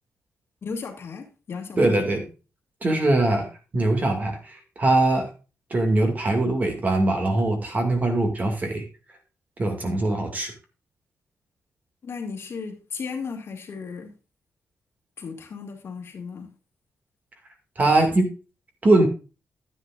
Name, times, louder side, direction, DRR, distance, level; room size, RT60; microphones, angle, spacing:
voice 1, 0.6-2.1 12.0-14.1 15.2-16.5, left 5 dB, 50° left, 3 dB, 2.1 m, -35 dB
voice 2, 1.8-2.3 2.8-3.5 3.7-5.3 5.7-8.9 9.6-10.5 17.8-18.3 18.8-19.1, right 2 dB, 30° right, 4 dB, 2.2 m, -22 dB
10.5 x 9.8 x 2.5 m, 0.32 s
wide cardioid pair, 150°, 5 cm